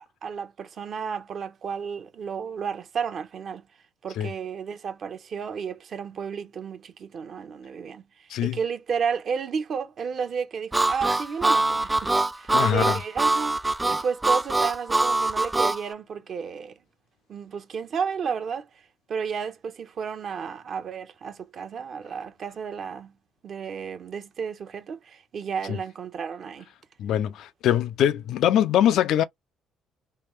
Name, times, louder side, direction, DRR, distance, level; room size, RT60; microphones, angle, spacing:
voice 1, 0.0-3.6 4.0-16.7 17.3-18.7 19.1-23.1 23.4-26.7, right 6 dB, 50° right, 0.8 m, -32 dB
Harmonica, 10.7-15.8, right 2 dB, 15° right, 0.4 m, -23 dB
voice 2, 12.5-13.0 25.7-25.8 27.0-29.2, left 11 dB, 70° left, 0.4 m, -23 dB
3.3 x 2.3 x 3.2 m
supercardioid pair, 85°, 0 cm